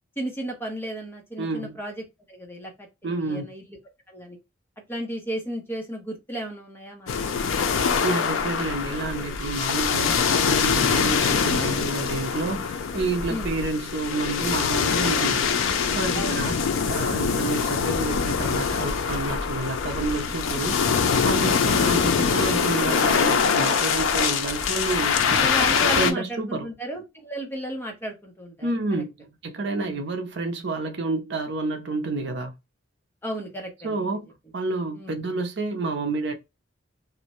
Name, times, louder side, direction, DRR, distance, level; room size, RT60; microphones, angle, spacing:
voice 1, 0.2-3.8 4.1-4.4 4.9-7.9 13.3-13.5 16.1-16.4 25.4-28.7 29.7-30.0 33.2-34.2 35.0-35.2, right 1 dB, 10° left, 0.7 m, -34 dB
voice 2, 1.4-1.8 3.0-3.5 8.0-15.5 15.9-20.8 21.2-25.5 25.8-26.7 28.6-32.5 33.8-34.3 34.5-36.3, right 3 dB, 60° right, 0.5 m, -29 dB
sound 1, 7.1-26.1, left 6 dB, 80° left, 0.4 m, -24 dB
2.5 x 2.1 x 2.9 m
head